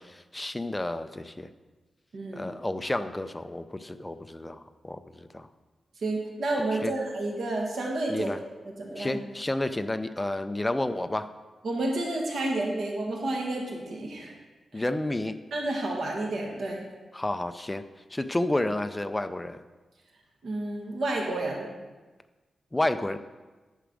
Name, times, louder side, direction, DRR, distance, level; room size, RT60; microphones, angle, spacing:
voice 1, 0.0-1.5 2.3-5.5 6.8-6.9 8.1-8.4 9.0-11.3 14.7-15.4 17.1-17.8 18.1-19.6 22.7-23.2, left 1 dB, 10° left, 10 dB, 0.4 m, -30 dB
voice 2, 2.1-2.5 6.0-8.3 8.6-9.2 11.6-14.3 14.7-14.8 15.5-16.8 20.4-21.7, right 2 dB, 70° right, -1 dB, 2.0 m, -30 dB
10.0 x 5.0 x 6.3 m, 1.2 s
wide cardioid pair, 160°, 0 cm